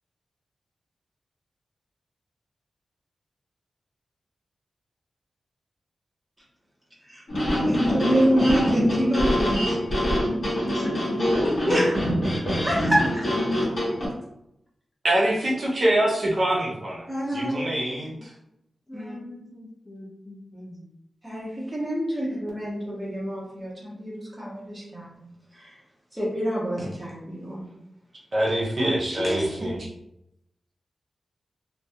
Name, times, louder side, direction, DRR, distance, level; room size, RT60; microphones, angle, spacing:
sound 1, 7.3-14.1, equal, 50° left, 1.0 m, -24 dB
voice 1, 7.6-9.8 11.7-11.9 12.6-13.0 17.1-17.5 18.9-19.1 21.2-25.2 25.5-25.7 26.1-27.7 28.8-29.5, equal, 10° right, -6 dB, 0.8 m, -26 dB
voice 2, 10.7-11.8 13.1-13.2 17.2-18.2 18.9-20.9 22.1-22.2, left 1 dB, 20° left, -5 dB, 0.5 m, -36 dB
voice 3, 15.0-18.1 28.3-29.8, right 1 dB, 40° right, -4 dB, 0.4 m, -24 dB
2.2 x 2.1 x 2.7 m, 0.81 s
wide cardioid pair, 165°, 0 cm